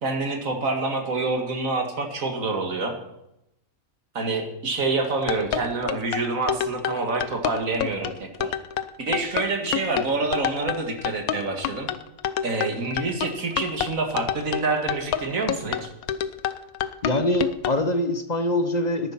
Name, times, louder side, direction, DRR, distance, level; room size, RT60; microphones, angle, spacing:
voice 1, 0.0-2.9 4.1-8.5 9.0-11.9 12.4-15.9, right 3 dB, 70° right, 4 dB, 2.3 m, -27 dB
sound 1, 5.0-17.8, left 10 dB, 85° left, 1.2 m, -28 dB
voice 2, 17.0-19.1, left 1 dB, 30° left, 8 dB, 1.2 m, -24 dB
13.5 x 11.0 x 5.9 m, 0.85 s
omnidirectional pair, 1.5 m